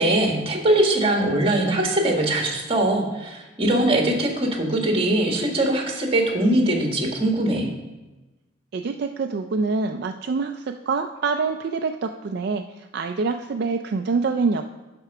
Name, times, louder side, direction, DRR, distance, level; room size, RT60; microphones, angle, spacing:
voice 1, 0.0-7.7, right 1 dB, 30° right, 1 dB, 1.5 m, -21 dB
voice 2, 8.7-14.6, right 4 dB, 60° right, 5 dB, 0.4 m, -26 dB
10.5 x 4.5 x 5.8 m, 1.1 s
head